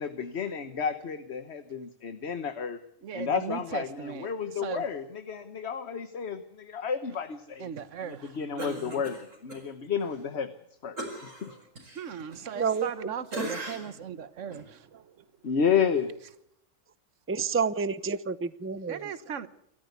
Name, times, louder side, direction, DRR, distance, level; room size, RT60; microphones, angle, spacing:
voice 1, 0.0-2.8 3.1-7.7 8.0-10.5 10.8-11.6 15.4-16.2, left 6 dB, 60° left, 1.4 m, -31 dB
voice 2, 3.0-4.9 7.6-9.0 11.9-15.2 18.8-19.5, right 7 dB, 75° right, 1.5 m, -38 dB
Cough, 8.6-9.6 10.0-10.2 11.0-13.0 13.3-14.0 14.5-14.7, right 1 dB, 90° right, 5.6 m, -39 dB
voice 3, 12.6-12.9 13.4-13.5 17.3-19.0, right 5 dB, 15° right, 0.6 m, -29 dB
27.5 x 13.5 x 8.1 m
omnidirectional pair, 1.3 m